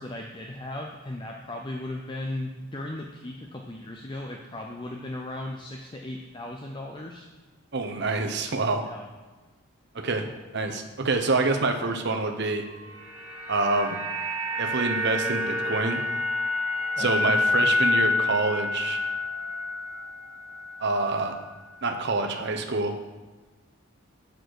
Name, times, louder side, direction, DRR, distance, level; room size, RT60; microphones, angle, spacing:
voice 1, 0.0-7.3 8.8-9.0 10.2-10.3 17.0-17.4, left 1 dB, 20° left, 1 dB, 0.4 m, -36 dB
voice 2, 7.7-8.9 9.9-10.2 10.5-12.6 13.5-14.0 14.6-16.0 17.0-19.0 20.8-21.3 21.8-22.9, right 3 dB, 50° right, 5 dB, 0.8 m, -26 dB
sound 1, 12.6-20.9 21.2-21.4, left 2 dB, 10° right, 1.6 m, -28 dB
6.8 x 6.5 x 4.7 m, 1.3 s
head